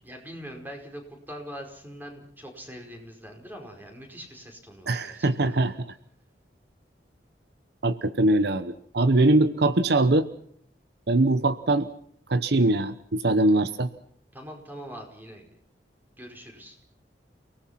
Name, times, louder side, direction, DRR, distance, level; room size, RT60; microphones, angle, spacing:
voice 1, 0.0-1.0 1.3-5.8 14.3-15.4 16.2-16.8, equal, 10° right, 3 dB, 5.1 m, -42 dB
voice 2, 4.9-5.9 7.8-10.3 11.1-11.9 12.3-13.9, right 2 dB, 65° right, 12 dB, 0.9 m, -22 dB
30.0 x 18.5 x 5.9 m, 0.68 s
head